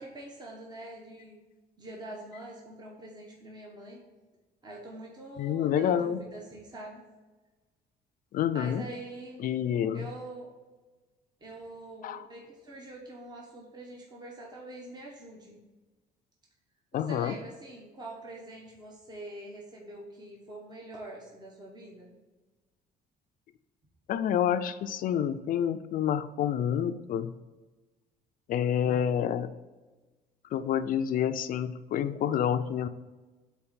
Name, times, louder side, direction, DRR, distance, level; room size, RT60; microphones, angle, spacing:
voice 1, 0.0-1.4 1.8-4.0 4.6-7.0 8.5-9.4 9.9-10.5 11.4-15.6 16.9-22.1, right 2 dB, 25° right, -2 dB, 1.2 m, -44 dB
voice 2, 5.4-6.2 8.3-8.8 9.4-10.1 12.0-12.2 16.9-17.3 24.1-27.3 28.5-29.5 30.5-32.9, left 9 dB, 55° left, 11 dB, 0.4 m, -28 dB
4.4 x 4.4 x 5.6 m, 1.2 s
cardioid pair, 110°, 17 cm